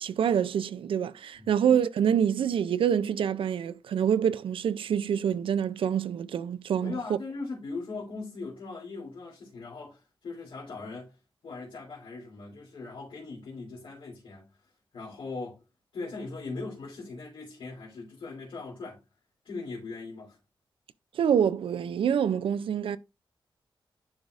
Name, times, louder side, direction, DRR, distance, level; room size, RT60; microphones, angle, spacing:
voice 1, 0.0-6.9 21.1-23.0, right 8 dB, 90° right, 0.4 m, -26 dB
voice 2, 6.8-11.1 11.4-14.4 14.9-15.6 15.9-19.0 19.4-20.4, left 3 dB, 85° left, 2.8 m, -39 dB
10.5 x 4.7 x 2.4 m
wide cardioid pair, 100°, 9 cm